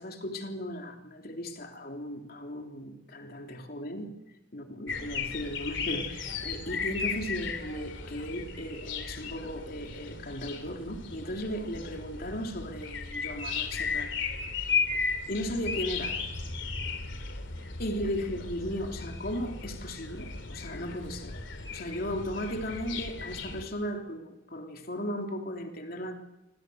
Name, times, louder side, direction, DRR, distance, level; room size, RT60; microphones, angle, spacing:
voice 1, 0.0-4.1 4.5-14.1 14.6-14.8 15.3-16.2 17.8-21.4 21.7-26.1, equal, 50° left, 4 dB, 3.3 m, -36 dB
sound 1, 4.9-23.6, left 5 dB, 65° left, 3.5 m, -35 dB
27.0 x 25.5 x 8.0 m, 1.0 s
head